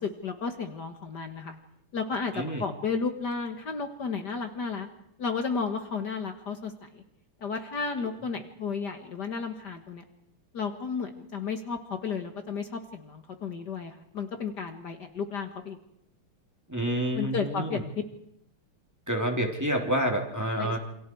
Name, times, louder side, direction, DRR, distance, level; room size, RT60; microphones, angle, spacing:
voice 1, 0.0-1.6 1.9-4.9 5.2-7.0 7.4-10.0 10.5-15.8 17.1-17.8 20.6-20.8, left 5 dB, 55° left, 6 dB, 2.1 m, -33 dB
voice 2, 16.7-17.8 19.1-20.8, right 1 dB, 10° right, 2 dB, 3.2 m, -28 dB
29.0 x 27.0 x 4.7 m, 0.75 s
omnidirectional pair, 2.3 m